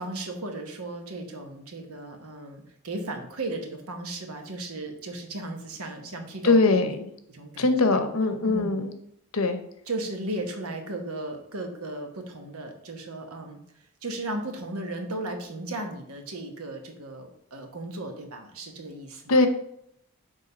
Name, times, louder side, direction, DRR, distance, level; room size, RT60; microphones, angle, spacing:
voice 1, 0.0-6.9 7.3-8.0 8.4-8.8 9.9-13.6 14.0-19.4, right 2 dB, 85° right, 4 dB, 1.2 m, -36 dB
voice 2, 6.4-7.0 7.6-8.9 9.3-9.6 19.3-19.5, left 3 dB, 80° left, 8 dB, 0.8 m, -21 dB
6.5 x 3.6 x 5.4 m, 0.73 s
head